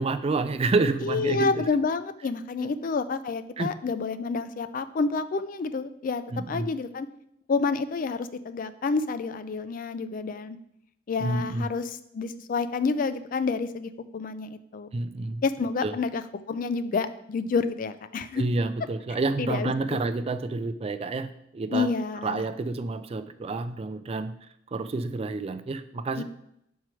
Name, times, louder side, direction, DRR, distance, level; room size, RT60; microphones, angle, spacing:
voice 1, 0.0-1.6 2.6-2.7 3.6-3.7 6.3-6.7 11.2-11.7 14.9-15.4 15.8-15.9 18.3-21.9 22.2-24.3 24.7-26.2, right 3 dB, 30° right, 11 dB, 0.4 m, -29 dB
voice 2, 1.0-7.1 7.5-10.6 11.1-14.9 15.4-18.4 19.4-19.7 21.7-22.4 26.2-26.3, left 4 dB, 45° left, 12 dB, 0.4 m, -29 dB
6.0 x 4.6 x 4.5 m, 0.76 s
head